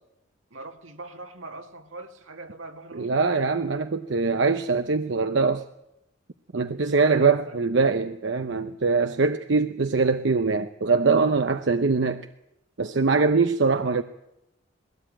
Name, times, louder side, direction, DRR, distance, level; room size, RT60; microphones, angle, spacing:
voice 1, 0.5-3.4 6.9-7.9, right 2 dB, 85° right, 2.2 m, -42 dB
voice 2, 3.0-5.6 6.5-12.2 12.8-14.0, right 4 dB, 65° right, 0.7 m, -22 dB
20.5 x 17.5 x 8.9 m
head